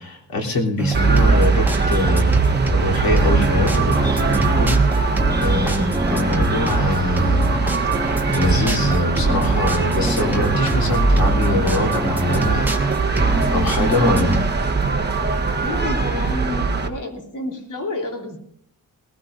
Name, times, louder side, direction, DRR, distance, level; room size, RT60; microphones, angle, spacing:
voice 1, 0.0-7.5 8.0-13.1 13.5-14.4, left 2 dB, 70° left, -1 dB, 3.4 m, -24 dB
sound 1, 0.8-14.4, right 2 dB, 5° right, 1.2 m, -23 dB
sound 2, 0.9-16.9, right 4 dB, 30° right, 1.2 m, -21 dB
voice 2, 15.6-18.4, left 2 dB, 55° left, 1 dB, 3.5 m, -30 dB
20.5 x 16.0 x 2.6 m, 0.69 s
wide cardioid pair, 120°, 37 cm